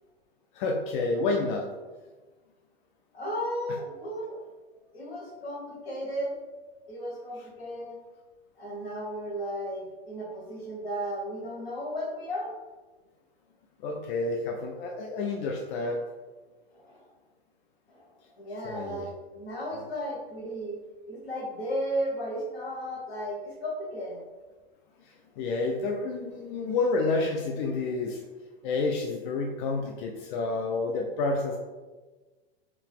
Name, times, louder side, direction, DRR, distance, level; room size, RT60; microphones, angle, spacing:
voice 1, 0.6-1.7 13.8-16.0 18.6-19.1 19.7-19.8 25.4-28.2 28.6-31.6, left 3 dB, 55° left, 1 dB, 0.5 m, -29 dB
voice 2, 3.1-4.4 4.9-6.3 6.9-8.0 8.6-12.5 16.7-17.0 17.9-20.8 21.1-24.2, equal, 85° left, -4 dB, 1.4 m, -34 dB
2.9 x 2.7 x 3.5 m, 1.3 s
hypercardioid pair, 110°, 30 cm